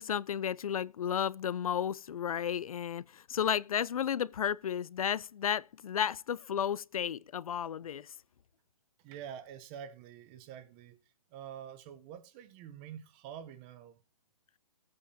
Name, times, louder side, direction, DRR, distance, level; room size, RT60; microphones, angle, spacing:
voice 1, 0.0-8.1, left 9 dB, 75° left, 0.4 m, -33 dB
voice 2, 9.0-11.0 11.3-14.0, right 9 dB, 15° right, 0.7 m, -47 dB
15.5 x 8.6 x 2.7 m
hypercardioid pair, 165°, 18 cm